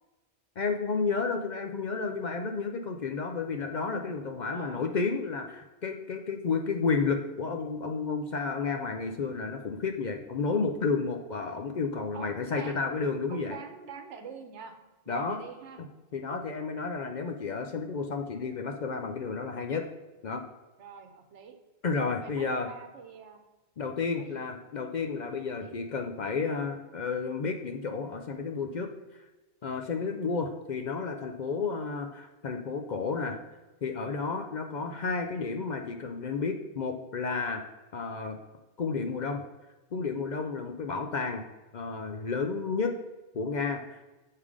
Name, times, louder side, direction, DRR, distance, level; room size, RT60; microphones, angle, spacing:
voice 1, 0.6-13.6 15.1-15.4 16.1-19.9 20.2-20.4 21.8-22.7 23.8-28.9 29.6-33.4 33.8-37.6 37.9-38.4 38.8-39.4 39.9-41.4 41.7-43.0 43.3-43.8, left 4 dB, 55° left, 4 dB, 0.5 m, -31 dB
voice 2, 4.5-5.0 10.4-10.7 12.1-12.9 13.3-14.7 15.0-15.8 20.8-21.6 22.1-23.4 24.2-24.4 25.4-25.8 34.8-35.0, right 6 dB, 90° right, 6 dB, 1.1 m, -46 dB
6.6 x 3.7 x 4.8 m, 1.1 s
omnidirectional pair, 1.2 m